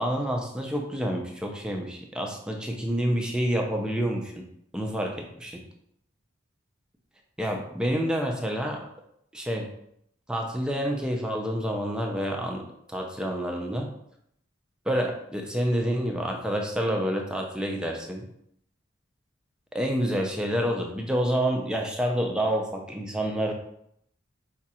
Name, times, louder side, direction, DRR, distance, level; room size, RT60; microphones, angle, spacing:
voice 1, 0.0-4.4 4.7-5.6 7.4-8.8 9.3-9.7 10.3-12.6 12.9-13.9 14.9-18.2 19.7-23.5, equal, 5° right, 1 dB, 0.6 m, -28 dB
5.0 x 2.4 x 4.2 m, 0.74 s
head